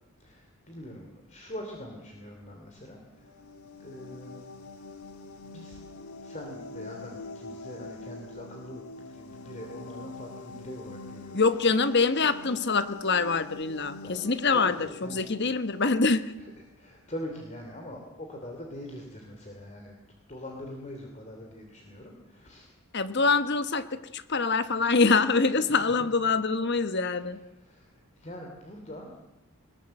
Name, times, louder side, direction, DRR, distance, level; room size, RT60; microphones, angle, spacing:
voice 1, 0.2-3.4 3.8-4.4 5.4-11.4 14.0-14.2 14.5-15.2 16.4-16.5 16.7-20.0 20.3-22.7 25.5-26.0 26.9-29.1, left 1 dB, 30° left, 2 dB, 2.9 m, -43 dB
sound 1, 3.1-16.7, left 3 dB, 80° left, 1.6 m, -45 dB
voice 2, 11.3-14.7 15.0-16.3 22.9-27.4, left 4 dB, 50° left, 12 dB, 1.2 m, -25 dB
22.5 x 20.0 x 7.7 m, 1.0 s
head